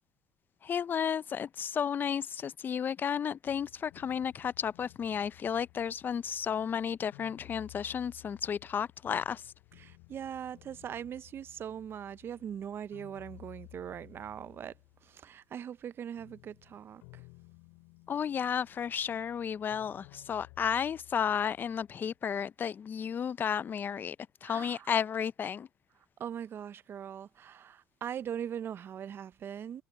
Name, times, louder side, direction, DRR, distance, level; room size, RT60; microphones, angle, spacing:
voice 1, 0.6-9.5 18.1-24.2 24.4-25.7, left 8 dB, 35° left, 0.6 m, -33 dB
sound 1, 3.4-15.5 15.8-22.2, left 30 dB, 80° left, 4.9 m, -57 dB
voice 2, 9.8-14.7 15.0-17.2 24.4-24.9 26.2-29.8, right 9 dB, 40° right, 0.6 m, -41 dB
supercardioid pair, 90°, 6 cm